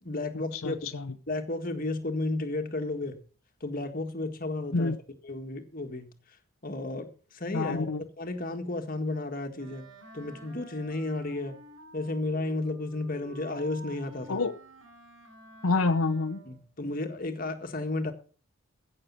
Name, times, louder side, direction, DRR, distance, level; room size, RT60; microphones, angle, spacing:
voice 1, 0.0-0.8 1.3-3.1 3.6-4.9 5.2-6.1 6.6-9.8 10.1-11.6 11.9-14.4 16.4-18.1, left 2 dB, 40° left, 1.8 m, -33 dB
voice 2, 0.5-1.1 4.7-5.0 7.5-8.0 14.3-14.5 15.6-16.4, left 3 dB, 85° left, 0.9 m, -27 dB
Wind instrument woodwind instrument, 9.6-16.7, equal, 65° right, 3.5 m, -50 dB
15.5 x 6.8 x 5.7 m
head